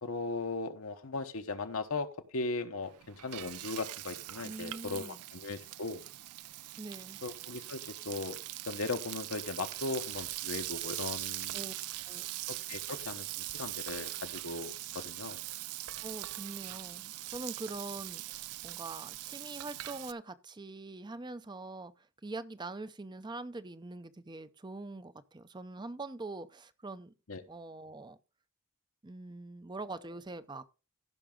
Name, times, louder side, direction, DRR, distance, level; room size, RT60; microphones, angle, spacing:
voice 1, 0.0-6.0 7.2-8.4 8.7-11.7 12.5-15.4 27.3-27.4, left 3 dB, 70° left, 1.1 m, -38 dB
Frying (food), 2.8-20.1, right 17 dB, 90° right, 0.4 m, -41 dB
voice 2, 4.4-5.2 6.8-7.2 11.5-11.7 12.1-12.3 16.0-21.9 22.2-27.1 27.5-28.2 29.0-30.6, right 2 dB, 20° right, 0.6 m, -43 dB
15.0 x 6.0 x 3.7 m
head